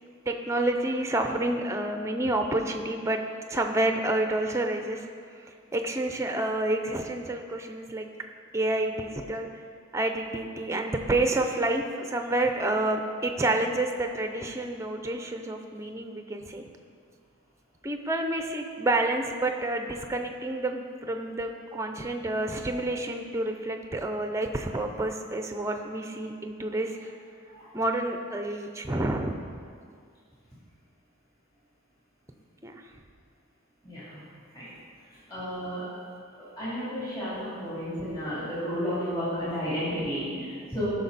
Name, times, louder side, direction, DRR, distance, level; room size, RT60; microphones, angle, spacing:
voice 1, 0.3-3.2 3.5-5.1 5.7-8.1 8.5-9.5 9.9-16.6 17.8-27.1 27.7-29.6 32.6-32.8, right 2 dB, 15° right, 5 dB, 0.6 m, -29 dB
voice 2, 33.8-34.2 34.5-34.7 35.3-35.9 36.6-40.9, equal, 20° left, -11 dB, 2.9 m, -32 dB
14.5 x 5.9 x 4.1 m, 2.2 s
head